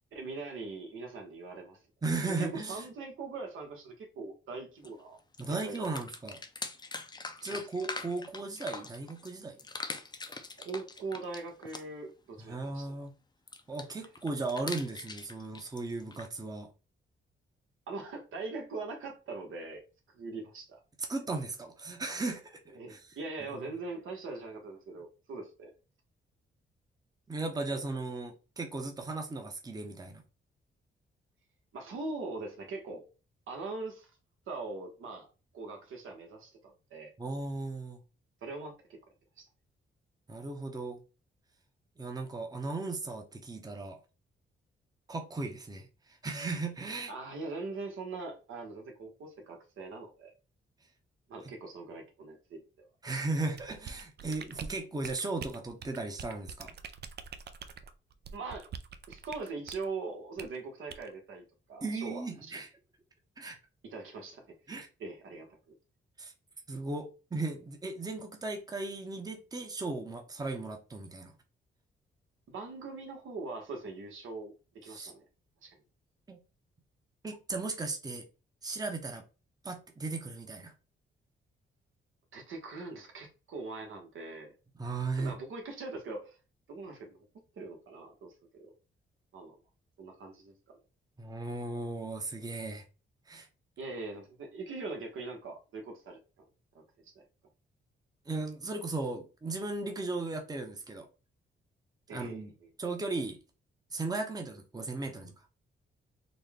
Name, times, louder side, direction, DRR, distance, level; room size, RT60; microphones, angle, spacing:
voice 1, 0.1-1.8 2.3-5.2 5.5-5.9 7.4-7.6 10.6-12.9 17.9-19.8 20.1-20.8 22.7-25.7 31.7-33.0 33.5-34.1 34.5-35.3 35.5-37.1 38.4-39.0 39.4-39.5 47.1-50.3 51.3-52.9 58.3-58.7 59.1-62.6 63.8-64.6 65.0-65.5 72.5-75.3 75.6-75.8 82.3-84.5 85.1-86.4 86.7-87.3 87.6-88.3 88.6-88.7 89.3-89.5 90.0-90.8 93.8-96.2 96.7-97.3 102.1-102.5, right 3 dB, 80° right, 1.2 m, -41 dB
voice 2, 2.0-2.8 5.4-6.4 7.4-9.6 12.4-13.1 13.7-16.7 21.0-23.0 23.4-23.7 27.3-30.2 37.2-38.0 40.3-41.0 42.0-44.0 45.1-47.1 51.4-51.5 53.0-56.8 61.8-62.7 63.4-63.6 64.7-64.9 66.2-66.3 66.7-71.3 74.9-75.1 76.3-76.4 77.2-78.3 78.6-79.2 79.6-80.7 84.8-85.4 91.2-92.8 93.3-93.5 98.3-101.1 102.1-102.5 102.8-103.4 103.9-105.3, right 3 dB, 20° right, 0.8 m, -36 dB
sound 1, 4.8-4.9 5.2-9.3 9.6-12.1 13.5-16.3, left 3 dB, 20° left, 0.5 m, -42 dB
sound 2, 53.5-59.9 60.4-60.6 60.9-61.1, right 7 dB, 55° right, 0.5 m, -45 dB
4.1 x 2.2 x 3.5 m
cardioid pair, 100°, 20 cm